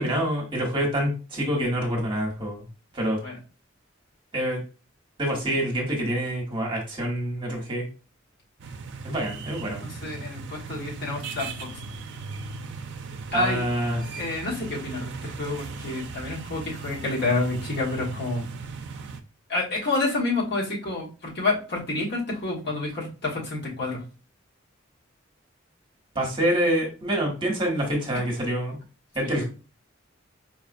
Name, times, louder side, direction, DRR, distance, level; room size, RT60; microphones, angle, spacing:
voice 1, 0.0-2.6 2.9-3.2 4.3-4.6 5.2-7.8 9.0-9.8 13.3-14.0 26.1-28.8 29.1-29.4, right 1 dB, 25° right, -1 dB, 1.1 m, -26 dB
sound 1, 8.6-19.2, right 4 dB, 60° right, 0.4 m, -38 dB
voice 2, 9.8-11.7 13.3-13.6 14.2-18.4 19.5-24.0 29.2-29.4, left 2 dB, 55° left, -4 dB, 1.4 m, -29 dB
4.6 x 2.3 x 2.5 m, 0.34 s
head